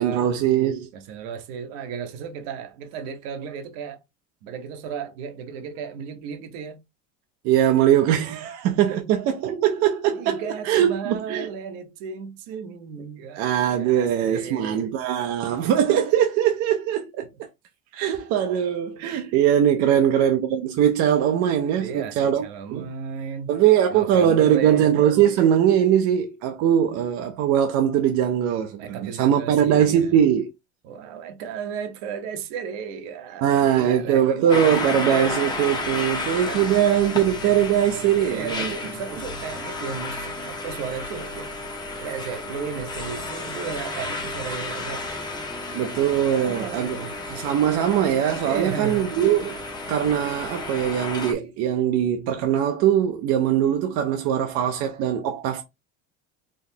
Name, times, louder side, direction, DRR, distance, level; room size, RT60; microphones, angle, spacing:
voice 1, 0.0-0.9 7.4-11.5 13.4-17.3 17.9-22.4 22.7-22.9 23.5-30.5 33.4-38.7 45.7-47.0 47.3-49.6 49.9-55.6, right 10 dB, 50° right, 0.5 m, -21 dB
voice 2, 0.9-4.0 4.4-6.8 8.9-9.0 10.1-14.9 19.8-20.1 21.8-23.5 23.9-25.1 28.8-30.2 30.8-34.4 36.0-36.8 38.1-41.6 42.0-45.2 46.3-47.1 48.4-49.1, right 7 dB, 85° right, 1.1 m, -35 dB
sound 1, 34.5-51.3, left 2 dB, 15° left, 0.8 m, -32 dB
4.1 x 3.0 x 2.8 m
cardioid pair, 170°, 31 cm